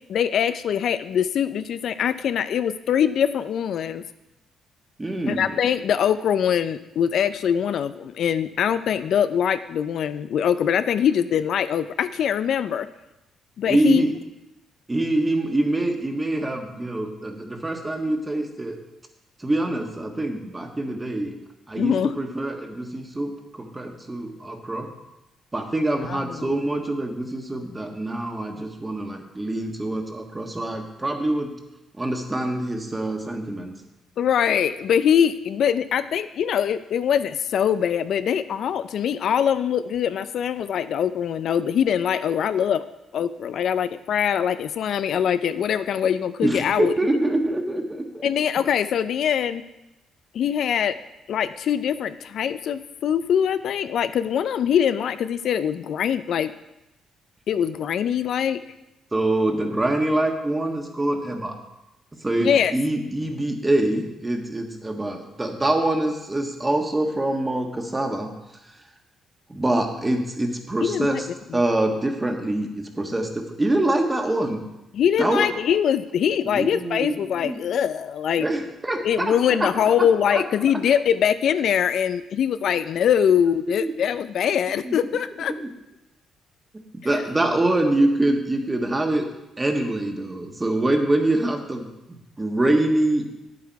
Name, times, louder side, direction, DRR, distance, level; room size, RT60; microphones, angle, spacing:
voice 1, 0.1-4.0 5.3-12.9 13.6-14.0 21.8-22.1 26.0-26.5 34.2-42.8 43.1-46.9 48.2-49.6 50.3-50.9 51.3-56.5 57.5-58.6 62.4-62.8 70.8-71.2 71.5-71.6 74.9-78.5 79.0-85.5 87.1-87.2, left 8 dB, 70° left, 12 dB, 0.4 m, -23 dB
voice 2, 5.0-5.5 13.7-14.1 14.9-18.8 19.4-21.4 21.7-24.9 25.5-31.5 32.0-33.7 46.4-48.3 59.1-61.6 62.2-68.3 69.5-71.3 71.5-74.6 75.2-75.5 76.4-77.6 78.4-79.3 79.6-79.7 80.0-80.4 83.6-83.9 84.8-85.0 85.6-85.7 87.0-89.3 89.6-93.2, right 1 dB, 20° right, 4 dB, 1.5 m, -25 dB
9.3 x 8.2 x 4.7 m, 0.93 s
cardioid pair, 90°, 0 cm